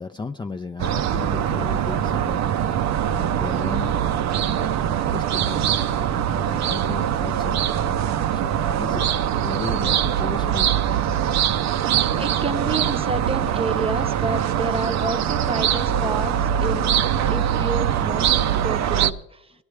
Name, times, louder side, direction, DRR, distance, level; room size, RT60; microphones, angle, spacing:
voice 1, 0.0-4.0 4.4-7.6 8.3-9.1 9.4-10.8, left 4 dB, 15° left, 7 dB, 0.4 m, -35 dB
sound 1, 0.8-19.1, right 9 dB, 65° right, 0.6 m, -22 dB
voice 2, 12.2-18.4 18.6-19.5, right 3 dB, 20° right, 8 dB, 0.8 m, -29 dB
17.0 x 11.5 x 3.3 m, 0.80 s
cardioid pair, 90°, 29 cm